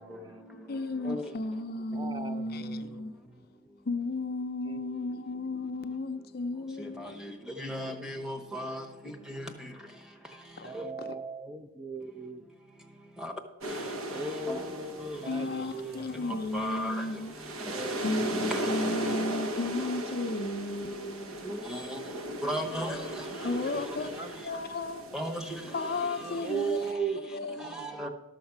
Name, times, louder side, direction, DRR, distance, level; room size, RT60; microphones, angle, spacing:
voice 1, 0.0-0.5 1.9-3.0 3.3-3.4 4.7-5.0 7.3-7.4 10.6-12.4 14.1-16.1 17.6-18.0 18.3-18.5 23.4-24.6 25.1-25.3 26.2-27.3 27.7-28.1, right 4 dB, 20° right, 0.4 m, -38 dB
voice 2, 0.7-3.2 3.8-7.2 10.6-10.7 11.0-11.2 15.3-17.4 18.0-21.5 23.4-24.1 24.4-25.0 25.7-27.7, left 2 dB, 45° left, 0.5 m, -34 dB
voice 3, 7.6-8.8 13.2-13.3 14.5-14.6 16.5-16.9 21.5-22.0 22.4-23.0 25.1-25.3 28.0-28.1, equal, 5° right, 0.9 m, -34 dB
sound 1, 13.6-26.9, right 1 dB, 75° right, 1.0 m, -37 dB
12.5 x 6.4 x 5.9 m
head